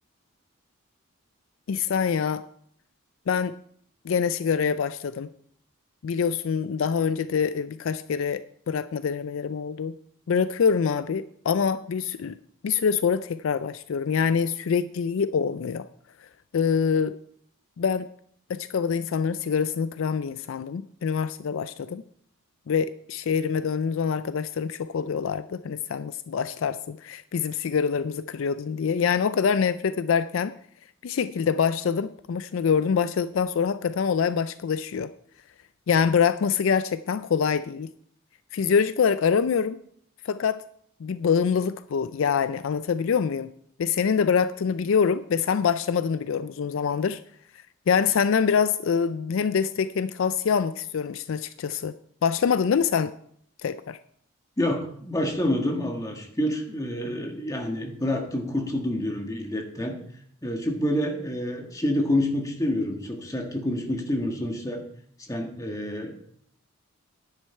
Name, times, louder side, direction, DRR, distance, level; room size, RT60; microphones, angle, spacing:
voice 1, 1.7-2.4 3.3-3.5 4.0-5.3 6.0-9.9 10.3-12.3 12.6-15.8 16.5-17.1 17.8-18.0 18.5-22.0 22.7-30.5 31.0-35.1 35.9-37.9 38.5-39.8 40.3-40.6 41.0-43.5 43.8-47.2 47.9-51.9 52.2-53.1 53.6-54.0, left 6 dB, 65° left, 14 dB, 0.4 m, -25 dB
voice 2, 54.6-60.0 60.4-64.8 65.2-66.1, left 1 dB, 15° left, 2 dB, 1.6 m, -28 dB
10.5 x 9.9 x 4.4 m, 0.64 s
head